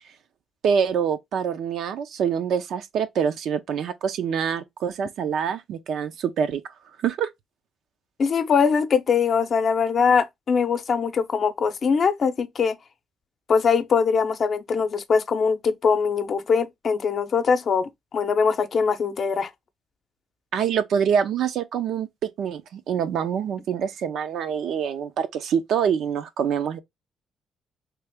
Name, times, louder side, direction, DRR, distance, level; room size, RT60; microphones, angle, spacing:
voice 1, 0.6-6.6 7.0-7.3 20.5-26.8, right 7 dB, 75° right, 0.6 m, -25 dB
voice 2, 8.2-12.8 13.5-19.5, left 5 dB, 50° left, 0.6 m, -22 dB
3.3 x 2.4 x 3.4 m
cardioid pair, 90°, 0 cm